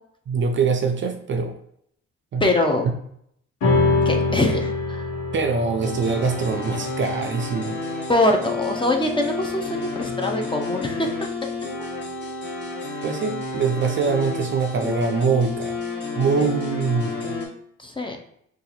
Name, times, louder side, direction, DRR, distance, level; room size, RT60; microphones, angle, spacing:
voice 1, 0.3-1.6 2.3-2.4 5.3-7.8 13.0-15.8 16.2-17.4, right 5 dB, 40° right, 5 dB, 0.4 m, -23 dB
voice 2, 2.4-2.9 4.1-5.1 8.1-11.3 16.4-16.5 17.8-18.2, left 1 dB, 15° left, 3 dB, 0.5 m, -23 dB
sound 1, 3.6-10.3, left 2 dB, 80° left, 1.2 m, -26 dB
sound 2, 5.8-17.5, left 3 dB, 35° left, 1.2 m, -31 dB
2.7 x 2.5 x 4.0 m, 0.71 s
cardioid pair, 90°, 30 cm